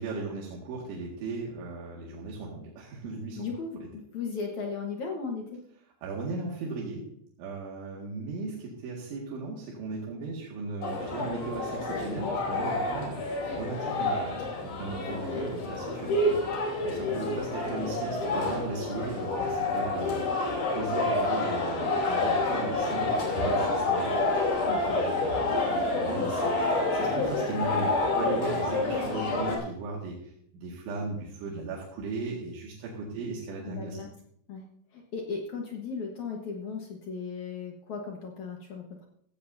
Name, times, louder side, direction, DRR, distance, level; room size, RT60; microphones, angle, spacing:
voice 1, 0.0-3.5 6.0-7.0 7.4-14.4 14.7-34.0, right 3 dB, 85° right, -4 dB, 4.4 m, -37 dB
voice 2, 3.3-5.6 15.3-15.4 15.9-16.2 24.7-25.0 33.1-33.2 33.7-34.1 34.5-34.6 34.9-39.0, left 5 dB, 70° left, 0 dB, 1.8 m, -37 dB
sound 1, 10.8-29.6, left 2 dB, 50° left, 4.2 m, -28 dB
16.0 x 15.5 x 2.7 m, 0.73 s
omnidirectional pair, 5.3 m